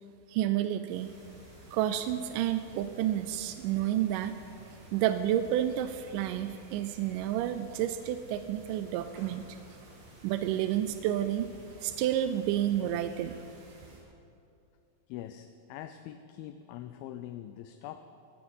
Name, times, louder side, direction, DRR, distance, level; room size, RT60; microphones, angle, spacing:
voice 1, 0.3-1.2 1.7-4.3 4.9-9.6 10.2-11.5 11.8-13.4, right 11 dB, 80° right, 10 dB, 1.9 m, -30 dB
sound 1, 0.9-14.0, right 1 dB, 65° right, 4.3 m, -53 dB
voice 2, 15.1-18.0, left 12 dB, 85° left, 8 dB, 2.4 m, -43 dB
17.5 x 12.5 x 5.6 m, 2.5 s
omnidirectional pair, 4.2 m